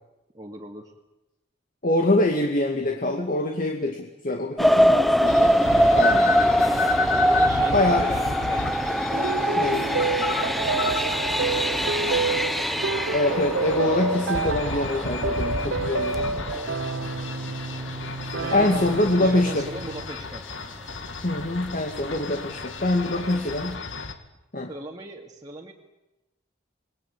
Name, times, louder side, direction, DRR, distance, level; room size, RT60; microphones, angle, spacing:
voice 1, 0.3-0.9 7.1-12.4 18.4-20.5 23.1-23.5 24.7-25.7, right 1 dB, 20° right, -1 dB, 2.5 m, -40 dB
voice 2, 1.8-6.7 7.7-8.1 9.6-9.9 13.1-16.4 18.5-19.7 21.2-23.8 24.5-24.7, left 2 dB, 45° left, 3 dB, 2.4 m, -25 dB
sound 1, 4.6-17.2 17.8-17.9 18.4-18.6 18.9-19.0, equal, ahead, 0.8 m, -23 dB
sound 2, 5.3-24.1, left 3 dB, 85° left, 2.4 m, -33 dB
sound 3, 9.1-20.0, right 4 dB, 70° right, 0.8 m, -29 dB
27.5 x 21.0 x 8.7 m, 0.98 s
head